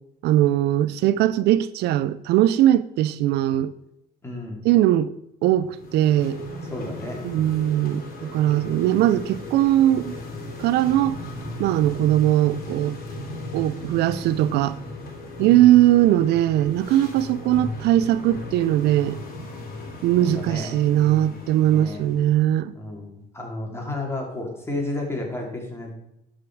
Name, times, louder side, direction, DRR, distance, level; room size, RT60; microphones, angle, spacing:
voice 1, 0.2-3.7 4.6-5.1 5.4-6.4 7.2-10.2 10.6-11.2 11.6-13.0 13.5-14.8 15.4-19.2 20.0-22.7, right 13 dB, 80° right, 0.4 m, -20 dB
voice 2, 4.2-4.7 6.7-7.8 15.4-15.7 20.2-22.0 22.7-25.9, left 2 dB, 15° left, 2.8 m, -33 dB
sound 1, 5.7-22.3, left 2 dB, 60° left, 2.8 m, -37 dB
12.0 x 5.1 x 4.6 m
cardioid pair, 110°, 17 cm